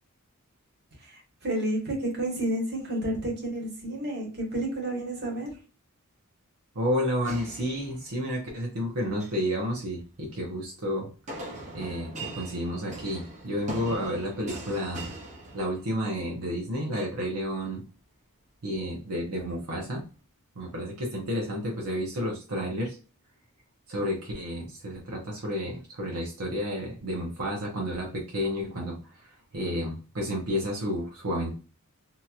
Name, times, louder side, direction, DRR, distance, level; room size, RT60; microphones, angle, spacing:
voice 1, 1.0-5.5, right 1 dB, 50° right, -1 dB, 1.3 m, -30 dB
voice 2, 6.7-11.1 11.7-15.1 15.5-17.8 18.6-20.0 20.6-23.0 23.9-31.6, equal, 80° right, -2 dB, 0.8 m, -31 dB
sound 1, 7.3-8.3 9.0-9.5 11.3-16.1, right 2 dB, 35° right, 0.8 m, -41 dB
2.9 x 2.8 x 2.4 m, 0.34 s
head